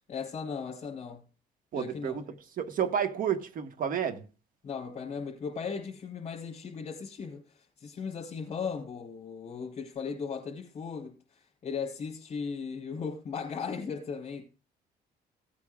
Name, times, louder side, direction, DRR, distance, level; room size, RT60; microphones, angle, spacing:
voice 1, 0.1-1.2 1.7-2.2 4.6-7.4 7.8-14.4, left 5 dB, 40° left, 4.1 m, -37 dB
voice 2, 1.7-4.2, right 8 dB, 55° right, 1.4 m, -31 dB
17.5 x 8.5 x 2.4 m
cardioid pair, 110°, 17 cm